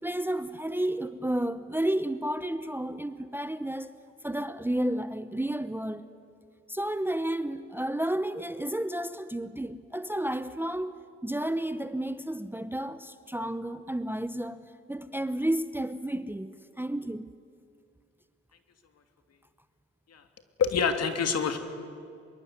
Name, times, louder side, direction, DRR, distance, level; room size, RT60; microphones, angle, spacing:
voice 1, 0.0-3.9 4.2-6.0 6.7-10.9 11.2-17.3, right 1 dB, 5° right, 0.9 m, -31 dB
voice 2, 20.6-21.6, left 6 dB, 55° left, 2.9 m, -26 dB
25.0 x 22.5 x 9.7 m
cardioid pair, 90°, 30 cm